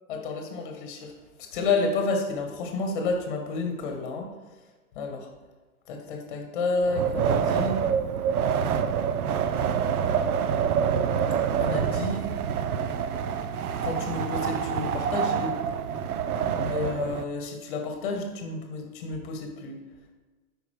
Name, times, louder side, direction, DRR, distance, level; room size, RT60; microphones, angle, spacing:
voice 1, 0.1-1.1 1.4-4.3 4.9-5.3 5.9-7.8 11.6-12.3 13.8-15.6 16.4-19.8, left 3 dB, 35° left, 3 dB, 1.2 m, -30 dB
Wind, 6.9-17.2, right 7 dB, 75° right, 0.6 m, -26 dB
8.7 x 5.3 x 3.1 m, 1.2 s
hypercardioid pair, 155°, 44 cm